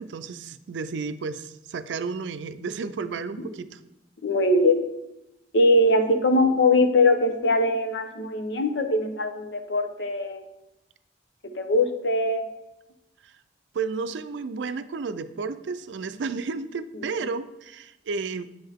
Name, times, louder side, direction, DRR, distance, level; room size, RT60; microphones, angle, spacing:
voice 1, 0.0-3.8 13.2-13.4 13.7-18.7, right 4 dB, 80° right, 12 dB, 0.4 m, -32 dB
voice 2, 4.2-4.9 5.5-10.4 11.5-12.4, left 2 dB, 80° left, 7 dB, 0.8 m, -21 dB
7.9 x 5.6 x 3.5 m, 0.90 s
head